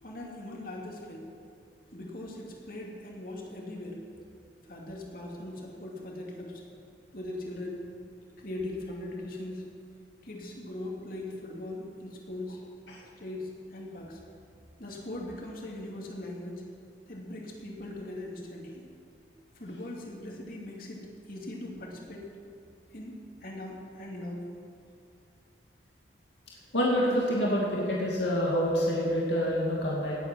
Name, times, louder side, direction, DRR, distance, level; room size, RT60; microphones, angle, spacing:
voice 1, 0.0-1.3 1.9-4.1 4.6-6.6 7.1-7.9 8.4-9.7 10.2-12.7 13.2-14.2 14.8-16.6 17.1-18.8 19.5-22.3 22.9-24.4, left 1 dB, 50° left, -1 dB, 2.5 m, -40 dB
voice 2, 26.7-30.2, equal, 80° left, -4 dB, 2.5 m, -27 dB
18.0 x 8.6 x 6.3 m, 2.4 s
head